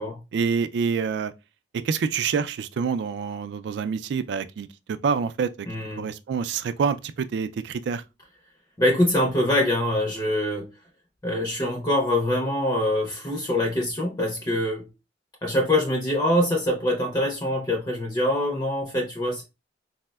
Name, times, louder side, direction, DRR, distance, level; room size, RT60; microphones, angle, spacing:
voice 1, 0.3-1.3 1.7-5.7 6.0-8.0, right 6 dB, 70° right, 0.3 m, -27 dB
voice 2, 5.7-6.1 8.8-10.7 11.2-14.9 15.4-19.4, left 1 dB, 20° left, 0.5 m, -24 dB
4.2 x 2.1 x 2.2 m
head